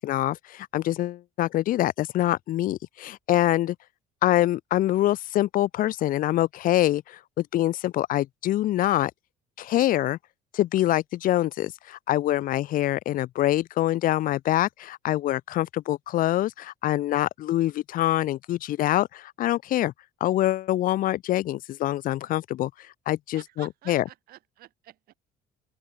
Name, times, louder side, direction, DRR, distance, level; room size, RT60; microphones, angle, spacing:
voice 1, 0.0-3.7 4.2-9.1 9.6-10.2 10.5-19.9 20.2-22.7 23.1-24.0, left 14 dB, 55° left, 0.9 m, -25 dB
voice 2, 23.3-25.1, right 15 dB, 65° right, 5.7 m, -50 dB
open air
cardioid pair, 140°, 16 cm